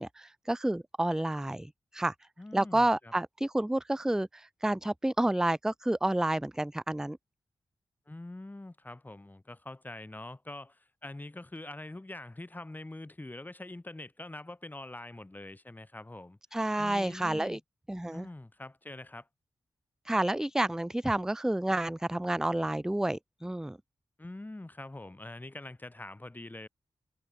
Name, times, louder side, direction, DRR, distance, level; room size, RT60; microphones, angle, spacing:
voice 1, 0.0-2.1 2.5-7.2 16.5-17.6 17.9-18.3 20.1-23.8, right 1 dB, 5° right, 0.4 m, -30 dB
voice 2, 2.4-3.1 8.1-16.4 16.8-17.6 18.1-19.3 24.2-26.7, left 2 dB, 20° left, 6.3 m, -44 dB
cardioid pair, 75°, 9 cm